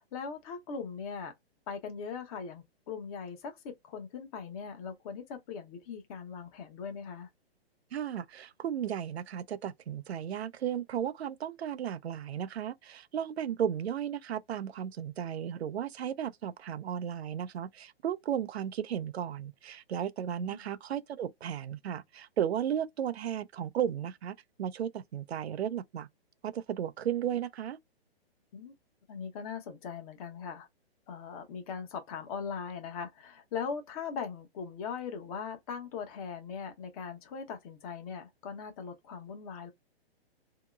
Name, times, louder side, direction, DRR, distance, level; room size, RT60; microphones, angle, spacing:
voice 1, 0.0-1.3 1.7-7.3 20.4-20.6 28.5-28.7 29.1-30.7 31.1-39.7, left 6 dB, 35° left, 0.8 m, -40 dB
voice 2, 7.9-26.1 26.4-27.8, right 9 dB, 85° right, 0.5 m, -34 dB
2.8 x 2.7 x 2.3 m
hypercardioid pair, 135°, 31 cm